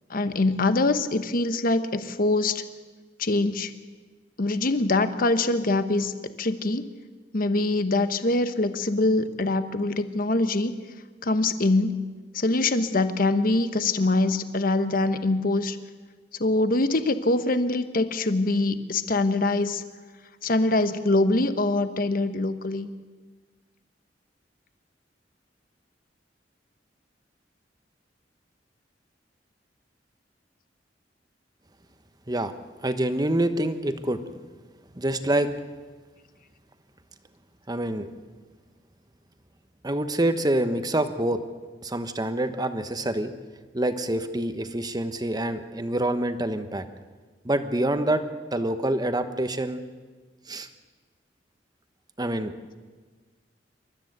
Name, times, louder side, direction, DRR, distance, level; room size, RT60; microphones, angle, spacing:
voice 1, 0.1-2.6 3.2-3.7 4.4-6.1 6.4-6.9 7.3-10.7 11.2-12.1 12.3-15.8 16.4-19.8 20.4-22.9, left 2 dB, 50° left, 10 dB, 1.1 m, -24 dB
voice 2, 32.8-34.4 34.9-35.5 37.7-38.1 39.8-41.4 41.8-43.3 43.7-46.8 47.4-48.2 48.5-49.8 50.5-50.7 52.2-52.5, right 1 dB, 20° right, 9 dB, 1.2 m, -26 dB
28.0 x 13.0 x 8.1 m, 1.4 s
head